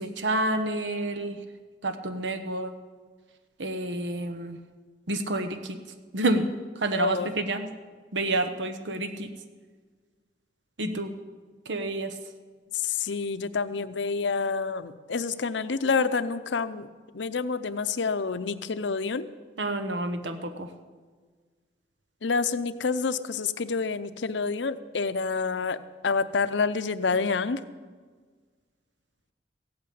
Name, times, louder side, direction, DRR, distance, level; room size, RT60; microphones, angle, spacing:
voice 1, 0.0-1.4 1.8-2.7 3.6-4.6 5.1-5.8 6.1-6.5 6.8-7.7 8.1-9.3 10.8-11.1 11.7-12.1 19.6-20.7, right 2 dB, 90° right, 8 dB, 1.1 m, -29 dB
voice 2, 7.0-7.3 12.8-16.9 17.1-19.3 22.2-27.6, left 4 dB, 90° left, 13 dB, 0.7 m, -28 dB
15.5 x 8.7 x 8.6 m, 1.5 s
head